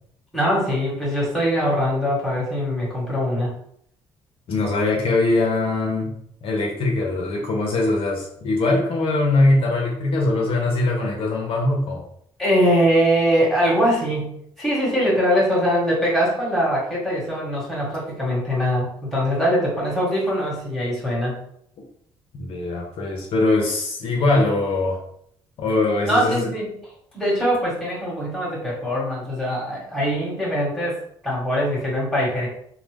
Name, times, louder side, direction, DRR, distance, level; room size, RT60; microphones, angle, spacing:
voice 1, 0.3-3.5 12.4-21.3 26.1-26.7 27.1-32.5, equal, ahead, -6 dB, 1.4 m, -22 dB
voice 2, 4.5-6.1 6.4-12.0 22.3-25.0 25.6-26.5, left 2 dB, 65° left, -1 dB, 0.7 m, -21 dB
2.8 x 2.0 x 3.3 m, 0.69 s
cardioid pair, 90°, 10 cm